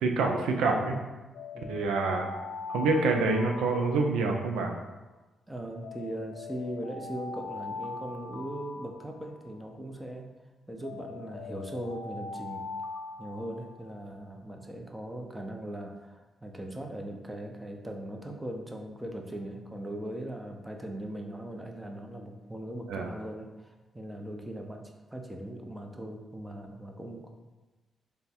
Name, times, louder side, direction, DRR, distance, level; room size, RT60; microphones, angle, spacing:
voice 1, 0.0-0.9 1.7-2.3 2.7-4.8 22.9-23.1, right 3 dB, 90° right, 3 dB, 0.3 m, -26 dB
Alarm, 1.3-4.7 5.8-9.7 10.8-14.1, left 3 dB, 85° left, 0.3 m, -41 dB
voice 2, 5.5-10.3 10.7-12.7 13.2-27.3, right 1 dB, 15° right, 3 dB, 0.5 m, -39 dB
3.2 x 2.1 x 4.2 m, 1.1 s
supercardioid pair, 60°, 0 cm